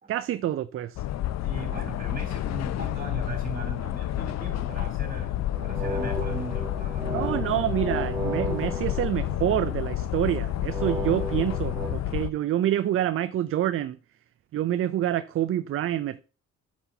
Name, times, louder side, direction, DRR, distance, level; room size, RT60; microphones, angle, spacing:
voice 1, 0.1-1.0 7.1-14.0 14.5-16.2, right 12 dB, 45° right, 0.4 m, -27 dB
sound 1, 1.0-12.3, left 13 dB, 60° left, 0.5 m, -30 dB
voice 2, 1.4-7.4, right 3 dB, 30° right, 3.1 m, -39 dB
sound 2, 5.5-9.8 10.7-11.9, right 1 dB, 15° right, 1.9 m, -34 dB
7.9 x 6.1 x 2.7 m
cardioid pair, 90°, 30 cm